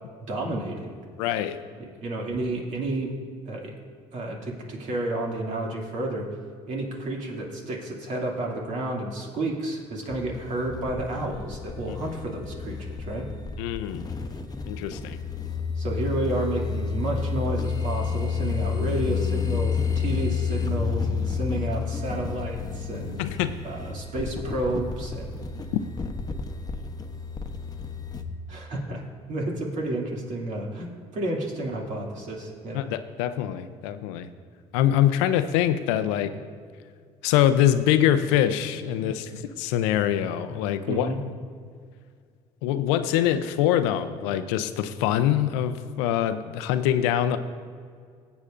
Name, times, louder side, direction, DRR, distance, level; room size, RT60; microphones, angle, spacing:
voice 1, 0.3-1.0 1.8-3.1 3.5-3.8 4.1-6.3 6.7-13.3 15.8-23.2 23.6-25.3 28.5-32.8 40.9-41.2, right 1 dB, 60° right, -1 dB, 2.5 m, -31 dB
voice 2, 1.2-1.6 13.6-14.0 14.7-15.2 23.2-23.5 25.7-25.8 32.7-34.3 34.7-36.4 37.2-41.1 42.6-47.4, left 11 dB, 90° left, 11 dB, 0.5 m, -24 dB
sound 1, 10.1-28.2, left 5 dB, 25° left, 0.9 m, -30 dB
17.0 x 8.2 x 2.5 m, 2.1 s
supercardioid pair, 80°, 14 cm